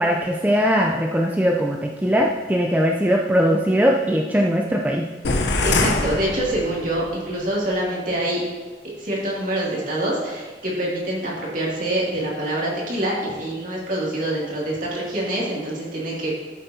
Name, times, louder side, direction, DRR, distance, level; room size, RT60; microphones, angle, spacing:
voice 1, 0.0-5.0, equal, 10° right, -1 dB, 0.4 m, -20 dB
sound 1, 5.2-7.1, left 3 dB, 80° left, 0.8 m, -23 dB
voice 2, 5.6-8.4 9.0-16.3, right 1 dB, 45° right, -5 dB, 2.5 m, -25 dB
13.0 x 7.3 x 2.8 m, 1.4 s
head